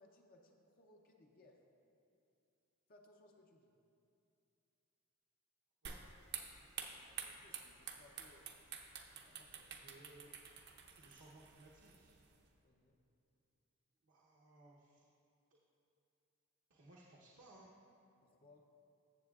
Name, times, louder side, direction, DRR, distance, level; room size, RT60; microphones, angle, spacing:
voice 1, 0.0-1.6 2.9-3.8 7.1-8.6 9.2-9.8 12.6-13.0 18.2-18.7, left 2 dB, 45° left, 2 dB, 0.6 m, -66 dB
sound 1, 5.9-12.4, right 7 dB, 50° right, 0.7 m, -50 dB
voice 2, 9.7-10.3 11.0-12.1 14.0-15.1 16.7-17.7, right 1 dB, 75° right, -4 dB, 0.9 m, -61 dB
14.0 x 7.5 x 2.4 m, 2.6 s
head